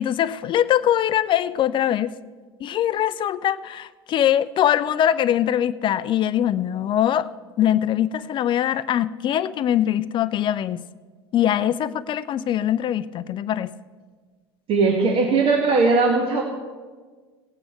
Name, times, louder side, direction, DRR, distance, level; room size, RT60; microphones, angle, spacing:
voice 1, 0.0-2.1 2.6-7.3 7.6-10.8 11.3-13.7, left 11 dB, 35° left, 16 dB, 0.5 m, -22 dB
voice 2, 14.7-16.4, right 4 dB, 40° right, 2 dB, 1.6 m, -19 dB
17.5 x 8.7 x 4.4 m, 1.5 s
figure-of-eight pair, 75°, 14 cm